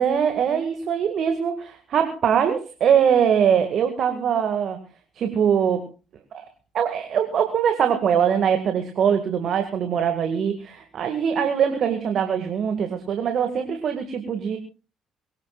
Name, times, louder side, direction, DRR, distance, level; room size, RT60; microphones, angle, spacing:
voice 1, 0.0-4.8 5.2-5.8 6.3-6.4 6.7-14.6, right 8 dB, 55° right, 6 dB, 2.0 m, -22 dB
22.5 x 18.0 x 2.4 m, 0.33 s
hypercardioid pair, 50°, 0 cm